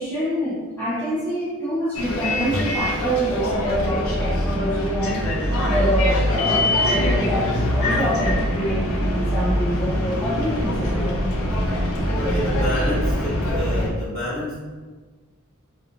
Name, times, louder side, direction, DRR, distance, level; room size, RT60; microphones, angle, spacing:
voice 1, 0.0-11.2 11.7-12.0, equal, 10° left, -9 dB, 0.4 m, -26 dB
Bus, 1.9-13.9, left 1 dB, 70° left, 0.4 m, -23 dB
voice 2, 12.1-14.5, equal, 30° left, -13 dB, 0.7 m, -28 dB
2.4 x 2.2 x 2.9 m, 1.4 s
head